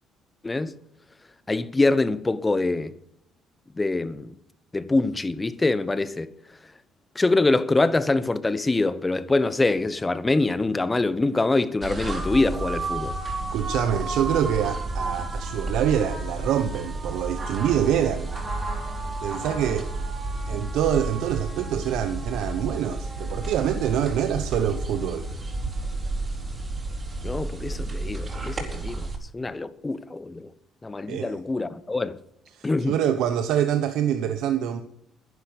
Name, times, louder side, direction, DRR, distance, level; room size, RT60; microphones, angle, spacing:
voice 1, 1.5-2.9 3.8-4.3 4.7-6.3 7.1-13.1 27.2-29.1 29.3-30.5 30.8-32.2 32.6-32.9, left 2 dB, 20° left, 1.0 m, -24 dB
sound 1, 11.8-29.2, right 2 dB, 30° right, 4.6 m, -31 dB
voice 2, 13.5-18.3 19.2-19.9 20.5-25.3 31.1-31.4 32.5-34.8, right 9 dB, 75° right, 0.9 m, -25 dB
11.5 x 10.0 x 6.7 m
supercardioid pair, 80°, 0 cm